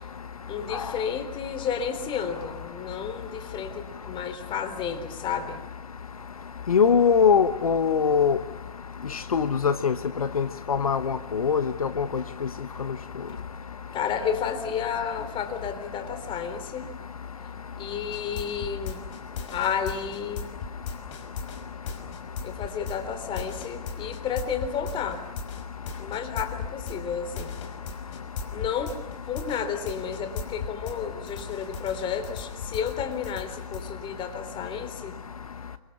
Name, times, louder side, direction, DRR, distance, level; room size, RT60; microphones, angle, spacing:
voice 1, 0.5-5.6 13.9-16.9 17.8-19.0 19.5-20.5 22.4-25.2 26.0-27.5 28.5-29.0 29.3-35.1, left 7 dB, 25° left, 10 dB, 3.6 m, -31 dB
voice 2, 6.7-8.4 9.3-9.9 10.3-12.2, left 6 dB, 75° left, 12 dB, 1.3 m, -22 dB
sound 1, 18.1-31.0 31.3-33.9, left 6 dB, 55° left, 5.7 m, -37 dB
28.5 x 24.5 x 7.2 m, 1.0 s
figure-of-eight pair, 110°, 19 cm